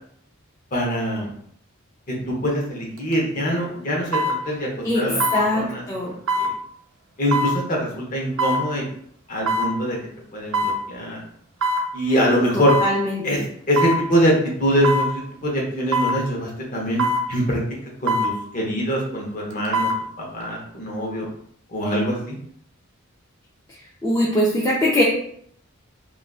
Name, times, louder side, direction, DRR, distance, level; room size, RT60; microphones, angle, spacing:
voice 1, 0.7-1.3 2.3-4.7 5.0-5.2 5.5-5.8 6.4-6.5 7.2-8.8 9.3-10.0 10.3-11.2 11.9-12.7 13.2-13.4 13.7-14.3 14.6-17.0 17.3-17.6 18.0-19.9 20.3-21.3 21.7-22.4, equal, 40° left, -2 dB, 0.8 m, -23 dB
sound 1, 3.0-3.1 4.1-4.4 5.2-5.4 6.3-6.5 7.3-7.6 8.4-8.6 9.5-9.7 10.5-10.8 11.6-11.9 12.7-12.9 13.8-14.0 14.8-15.1 15.9-16.2 17.0-17.3 18.1-18.3 19.5-20.0 20.4-20.5, equal, 65° right, 0.6 m, -22 dB
voice 2, 5.3-6.1 12.5-13.4 24.0-25.0, left 1 dB, 15° left, -6 dB, 0.3 m, -22 dB
3.5 x 2.4 x 2.3 m, 0.66 s
head